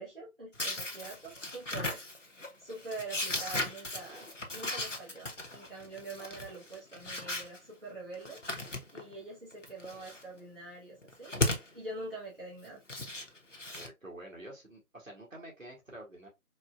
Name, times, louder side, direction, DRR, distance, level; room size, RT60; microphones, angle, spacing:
voice 1, 0.0-2.0 2.6-8.4 8.9-11.4 11.7-12.8, right 2 dB, 40° right, 1.2 m, -44 dB
sound 1, 0.5-7.6 8.1-9.1 9.5-10.2 11.0-11.7 12.6-13.9, left 2 dB, 55° left, 0.8 m, -37 dB
voice 2, 13.7-16.3, right 1 dB, 65° right, 1.8 m, -48 dB
4.2 x 2.3 x 2.3 m
figure-of-eight pair, 180°, 43 cm